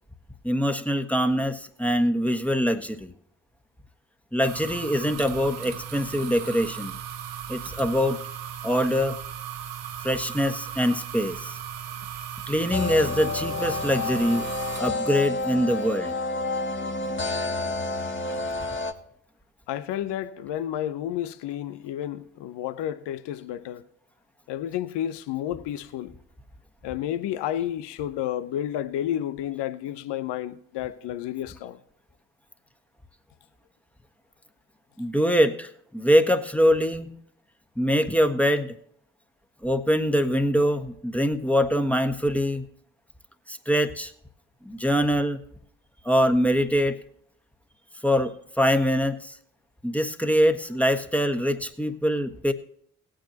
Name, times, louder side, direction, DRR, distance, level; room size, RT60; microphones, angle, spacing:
voice 1, 0.4-3.1 4.3-6.9 7.5-8.2 8.6-9.2 10.0-11.6 12.5-14.5 14.8-16.1 35.0-37.1 37.8-38.7 39.6-42.6 43.5-44.1 44.6-45.4 46.0-47.0 48.0-49.4 49.8-52.5, equal, 5° left, 1.5 m, -23 dB
sound 1, 4.4-14.8, right 9 dB, 75° right, 1.1 m, -37 dB
sound 2, 12.7-18.9, left 3 dB, 25° left, 1.6 m, -29 dB
voice 2, 19.7-23.8 24.5-26.1 26.8-31.8, left 11 dB, 70° left, 0.9 m, -31 dB
18.5 x 9.0 x 2.9 m
hypercardioid pair, 40°, 43 cm